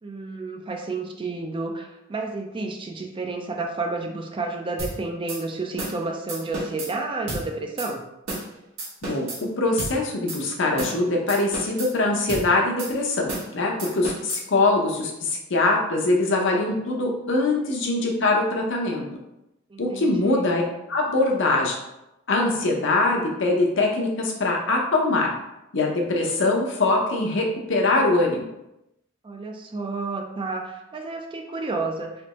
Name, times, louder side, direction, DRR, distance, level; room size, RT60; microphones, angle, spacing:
voice 1, 0.0-8.0 19.7-20.5 29.2-32.1, right 3 dB, 25° right, 2 dB, 0.4 m, -31 dB
sound 1, 4.8-4.9 5.3-5.4 5.8-6.0 6.3-6.9 7.3-7.4 7.8-7.9 8.3-8.5 8.8-9.4 9.8-9.9 10.3-10.4 10.8-11.0 11.3-11.9 12.3-12.5 12.8-12.9 13.3-13.5 13.8-14.4, right 2 dB, 75° right, 1.2 m, -32 dB
voice 2, 9.0-19.0 19.8-20.6 20.9-21.8 22.3-25.3 25.7-28.5, left 2 dB, 65° left, 0 dB, 0.7 m, -23 dB
3.4 x 3.0 x 2.9 m, 0.89 s
head